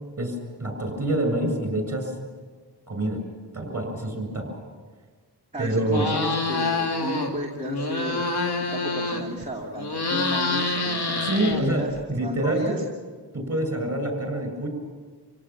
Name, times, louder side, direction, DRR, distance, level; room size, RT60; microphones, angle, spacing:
voice 1, 0.2-2.1 2.9-3.2 3.5-4.6 5.6-6.2 11.2-12.8 13.3-14.7, right 1 dB, 35° right, 4 dB, 7.6 m, -26 dB
voice 2, 5.5-11.2 11.6-12.8, right 1 dB, 15° right, -4 dB, 2.7 m, -33 dB
sound 1, 5.9-7.3 7.6-9.4 9.8-12.0, left 3 dB, 70° left, 2.7 m, -26 dB
27.5 x 17.5 x 7.4 m, 1.4 s
wide cardioid pair, 90°, 41 cm